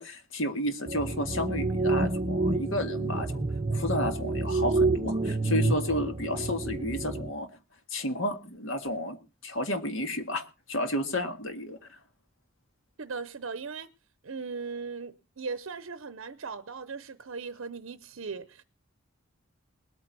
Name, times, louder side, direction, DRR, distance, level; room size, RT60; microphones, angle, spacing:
voice 1, 0.0-3.4 3.7-7.5 7.9-9.2 9.4-10.4 10.7-12.0, left 1 dB, 70° left, 1.8 m, -31 dB
sound 1, 0.9-7.3, right 3 dB, 30° right, 0.6 m, -28 dB
voice 2, 13.0-13.9 14.2-18.6, right 4 dB, 65° right, 0.7 m, -38 dB
20.5 x 8.9 x 4.1 m
head